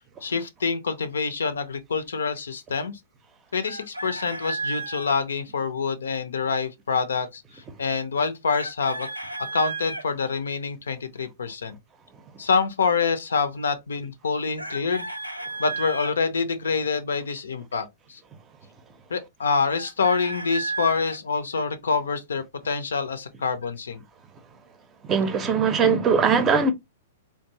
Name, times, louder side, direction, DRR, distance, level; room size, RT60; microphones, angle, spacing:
voice 1, 0.2-3.0 3.5-9.1 9.4-11.8 12.4-15.1 15.6-18.2 19.1-24.0, left 5 dB, 65° left, 0.5 m, -26 dB
Chicken rooster, 3.6-5.1 8.5-10.0 14.6-16.1 19.7-21.2, right 3 dB, 85° right, 0.4 m, -33 dB
voice 2, 25.1-26.7, right 5 dB, 20° right, 0.6 m, -20 dB
3.4 x 2.5 x 2.7 m
figure-of-eight pair, 105°, 0 cm